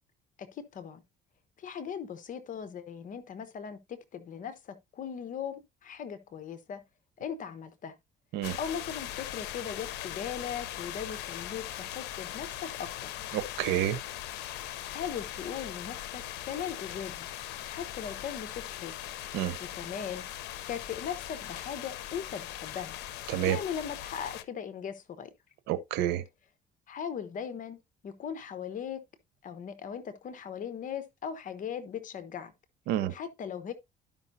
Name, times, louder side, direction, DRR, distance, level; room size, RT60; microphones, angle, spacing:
voice 1, 0.4-1.0 1.6-6.8 7.2-8.0 8.6-13.1 14.8-17.3 17.7-18.9 19.6-20.2 20.7-23.0 23.4-25.3 26.9-27.8 28.0-29.0 29.4-32.5 33.1-33.7, left 8 dB, 50° left, 1.0 m, -39 dB
sound 1, 8.4-24.4, left 13 dB, 90° left, 0.7 m, -40 dB
voice 2, 13.3-14.0 19.3-19.6 23.3-23.6 25.7-26.2 32.9-33.1, right 12 dB, 90° right, 0.8 m, -29 dB
12.0 x 5.4 x 2.6 m
cardioid pair, 110°, 17 cm